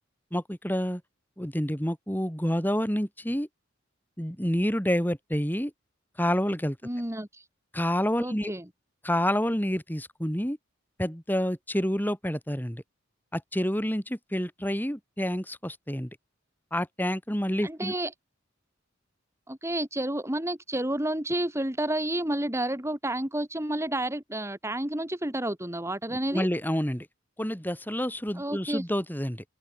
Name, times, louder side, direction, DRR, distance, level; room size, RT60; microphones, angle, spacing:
voice 1, 0.3-1.0 1.4-3.5 4.2-5.7 6.2-6.8 7.7-8.5 9.0-10.6 11.0-12.8 13.3-16.1 16.7-17.9 26.3-27.1 27.4-29.4, equal, 10° left, 7.4 m, -28 dB
voice 2, 6.8-7.5 8.2-8.6 17.6-18.1 19.5-26.5 28.3-28.9, right 1 dB, 15° right, 3.0 m, -30 dB
head